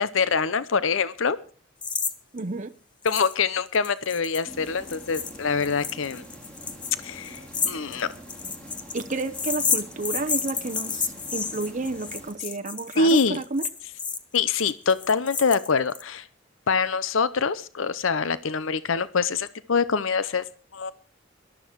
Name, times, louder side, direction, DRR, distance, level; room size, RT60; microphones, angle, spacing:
voice 1, 0.0-1.4 3.0-6.2 7.0-8.1 13.0-13.4 14.3-16.3 16.7-20.4 20.7-20.9, left 5 dB, 70° left, 16 dB, 0.7 m, -24 dB
sound 1, 1.8-2.1 2.4-2.5 3.1-3.4 3.7-16.0, left 5 dB, 25° left, 1.2 m, -31 dB
voice 2, 2.3-2.7 8.9-13.7, right 3 dB, 40° right, 7 dB, 0.7 m, -31 dB
sound 2, 4.4-12.3, equal, 5° left, 4.8 m, -45 dB
18.5 x 12.5 x 4.6 m, 0.38 s
head